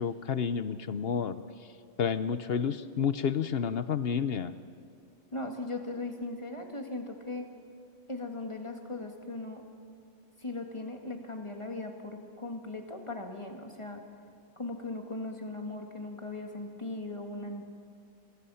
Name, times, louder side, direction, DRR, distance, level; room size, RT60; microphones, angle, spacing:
voice 1, 0.0-1.7 2.0-4.6, left 7 dB, 55° left, 13 dB, 0.8 m, -30 dB
voice 2, 5.3-7.5 8.1-9.6 10.4-14.0 14.6-17.7, left 2 dB, 20° left, 3 dB, 2.0 m, -38 dB
27.0 x 21.5 x 5.7 m, 2.3 s
omnidirectional pair, 1.4 m